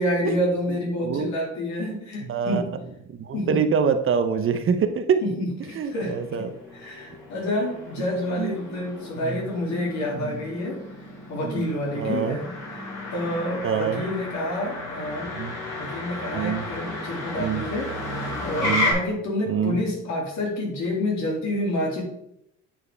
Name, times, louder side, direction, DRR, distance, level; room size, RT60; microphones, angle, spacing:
voice 1, 0.0-2.6 3.3-3.6 5.2-6.4 6.7-10.8 11.3-12.8 13.1-15.3 15.8-17.9 18.4-22.0, left 1 dB, 65° left, -1 dB, 2.7 m, -28 dB
voice 2, 2.3-2.6 3.1-5.2 5.7-6.5 8.0-8.1 8.4-8.5 9.2-9.4 10.1-10.4 11.4-11.7 11.9-12.4 13.6-14.0 15.3-15.5 16.3-16.7 17.4-17.6 18.6-18.9 19.5-19.8, right 7 dB, 45° right, 9 dB, 0.7 m, -25 dB
Motor vehicle (road), 5.8-18.9, left 2 dB, 85° left, 2.7 m, -33 dB
8.6 x 4.6 x 3.3 m, 0.78 s
supercardioid pair, 85°, 30 cm